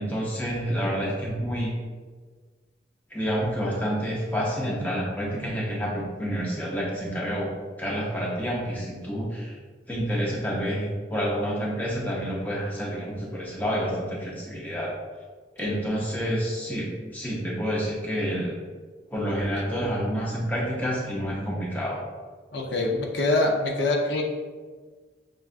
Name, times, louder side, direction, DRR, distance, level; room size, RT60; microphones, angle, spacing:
voice 1, 0.0-1.7 3.1-9.6 9.9-14.9 15.6-18.6 19.1-22.0, equal, 10° left, -4 dB, 0.6 m, -28 dB
voice 2, 22.5-24.2, left 2 dB, 75° left, 0 dB, 0.6 m, -24 dB
6.3 x 2.3 x 2.4 m, 1.5 s
head